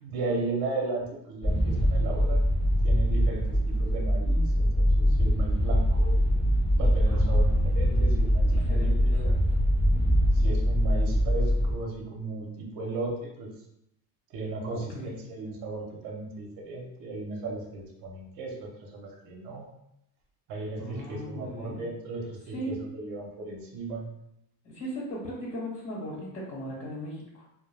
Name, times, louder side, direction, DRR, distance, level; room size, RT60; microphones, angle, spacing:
voice 1, 0.0-2.4 2.8-6.2 6.7-9.3 10.3-13.5 14.3-14.8 15.3-19.7 20.5-24.1, right 3 dB, 65° right, 0 dB, 0.7 m, -35 dB
sound 1, 1.4-11.7, equal, 15° left, 0.6 m, -23 dB
voice 2, 7.1-9.3 14.7-15.1 20.8-21.8 22.5-22.8 24.6-27.4, equal, 40° left, -4 dB, 1.0 m, -38 dB
2.2 x 2.0 x 3.2 m, 0.81 s
cardioid pair, 140°, 36 cm